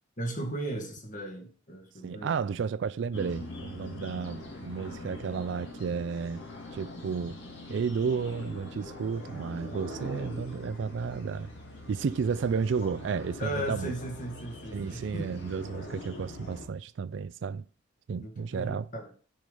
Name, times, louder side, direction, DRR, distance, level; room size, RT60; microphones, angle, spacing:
voice 1, 0.2-2.3 8.3-8.4 10.0-10.1 12.8-12.9 13.4-15.4 18.2-19.1, right 1 dB, 45° left, 1.9 m, -37 dB
voice 2, 2.0-6.4 6.7-7.4 7.7-11.5 11.9-13.9 14.7-17.6 18.1-18.9, right 6 dB, 65° right, 0.3 m, -32 dB
sound 1, 3.1-16.7, left 1 dB, 70° left, 2.3 m, -43 dB
9.2 x 5.0 x 5.4 m
head